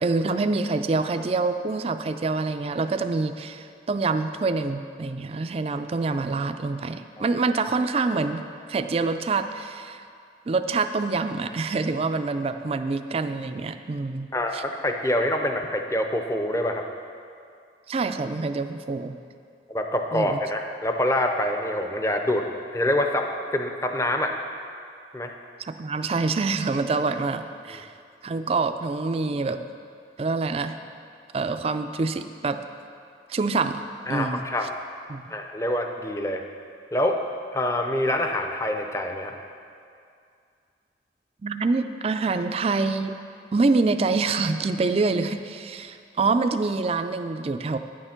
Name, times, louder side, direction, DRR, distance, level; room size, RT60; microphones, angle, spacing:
voice 1, 0.0-10.0 10.5-14.6 17.9-19.2 20.1-20.4 25.7-27.9 28.2-29.7 30.2-30.8 31.3-32.6 33.3-33.8 34.1-34.5 35.1-35.3 41.4-43.2 43.5-47.8, right 3 dB, 35° right, 9 dB, 0.3 m, -26 dB
voice 2, 14.3-16.8 19.7-22.5 22.7-24.3 25.1-25.3 27.7-27.8 34.1-34.8 35.3-36.4 36.9-37.2 37.5-39.3, left 1 dB, 15° left, 4 dB, 0.6 m, -26 dB
9.6 x 6.7 x 5.8 m, 2.3 s
head